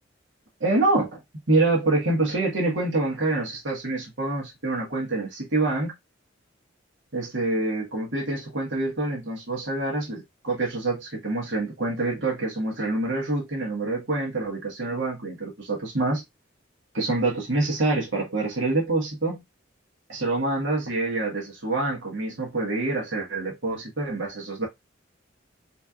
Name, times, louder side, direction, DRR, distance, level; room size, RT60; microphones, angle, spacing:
voice 1, 0.6-1.2 1.5-5.9 7.1-16.2 16.9-19.4 20.1-24.7, right 2 dB, 70° right, 1.5 m, -26 dB
4.1 x 3.3 x 2.4 m
head